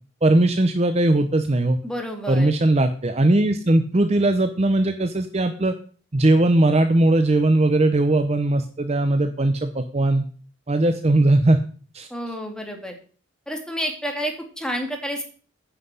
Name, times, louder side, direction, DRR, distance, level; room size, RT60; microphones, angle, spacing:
voice 1, 0.2-1.8 2.3-5.8 6.1-10.2 10.7-11.6 11.9-12.1, right 2 dB, 30° right, 8 dB, 0.7 m, -19 dB
voice 2, 1.8-2.5 12.1-13.0 13.5-15.2, equal, 5° left, 3 dB, 2.2 m, -29 dB
9.5 x 5.8 x 8.2 m, 0.40 s
head